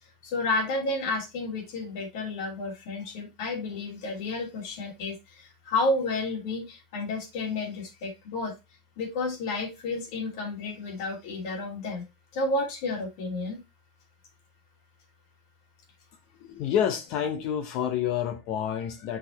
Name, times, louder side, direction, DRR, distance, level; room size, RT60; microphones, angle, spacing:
voice 1, 0.0-8.5 9.0-12.0 12.3-13.6, left 2 dB, 60° left, 2.6 m, -31 dB
voice 2, 16.4-19.2, left 9 dB, 45° left, 0.8 m, -28 dB
6.0 x 4.7 x 4.1 m
supercardioid pair, 170°, 3 cm